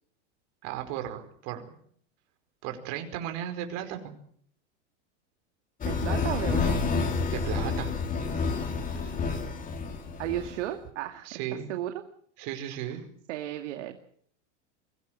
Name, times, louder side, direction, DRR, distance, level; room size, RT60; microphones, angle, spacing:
voice 1, 0.6-1.6 2.6-4.1 7.3-7.9 11.2-11.7 12.4-13.0, right 11 dB, 50° right, 6 dB, 5.0 m, -35 dB
sound 1, 5.8-10.6, left 4 dB, 20° left, 3.1 m, -29 dB
voice 2, 5.8-6.8 10.2-12.0 12.9-13.0 13.3-14.0, right 13 dB, 70° right, 5 dB, 2.3 m, -34 dB
23.5 x 17.5 x 7.9 m, 0.62 s
supercardioid pair, 140°, 37 cm